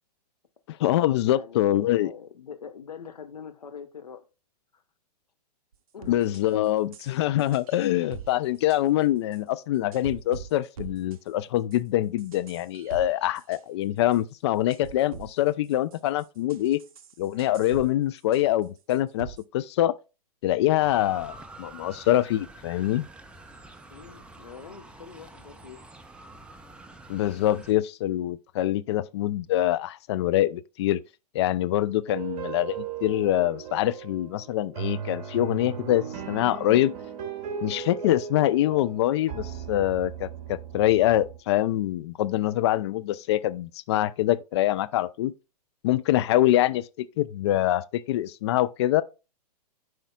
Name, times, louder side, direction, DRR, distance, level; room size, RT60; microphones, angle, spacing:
voice 1, 0.7-2.1 6.1-16.8 17.2-19.9 20.4-23.1 27.1-31.0 31.3-36.9 37.6-45.3 45.8-49.0, left 14 dB, 40° left, 0.5 m, -25 dB
voice 2, 1.2-4.2 4.7-4.8 5.9-6.3 23.9-25.9, left 7 dB, 75° left, 1.3 m, -44 dB
sound 1, 5.7-5.8 6.0-6.4 6.9-8.3 8.6-8.8 9.3-9.4 9.9-10.5 10.8-11.2 11.7-11.8 12.2-13.6 14.1-14.2 14.7-15.3 15.6-17.9 18.2-18.6 18.9-19.4, right 7 dB, 60° right, 0.7 m, -43 dB
Motor vehicle (road) / Siren, 20.8-27.7, right 2 dB, 5° right, 0.6 m, -47 dB
sound 2, 32.1-41.4, right 7 dB, 30° right, 2.3 m, -37 dB
14.0 x 4.9 x 2.4 m
figure-of-eight pair, 110°, 21 cm